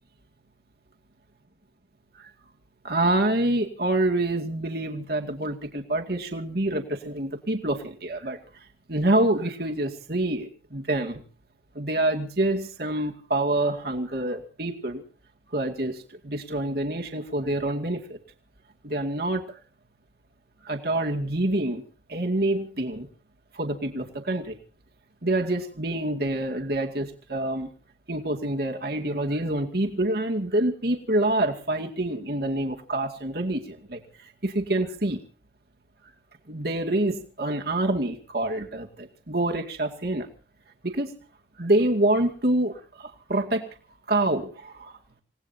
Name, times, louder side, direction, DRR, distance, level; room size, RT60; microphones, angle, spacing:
voice 1, 2.8-11.2 11.7-15.0 15.5-18.2 18.8-19.6 20.6-21.8 22.1-23.1 23.5-24.6 25.2-27.7 28.1-35.2 36.5-40.3 40.8-41.1 41.6-43.7 44.1-44.9, right 1 dB, 55° right, 3 dB, 2.3 m, -27 dB
28.0 x 18.5 x 2.8 m, 0.39 s
head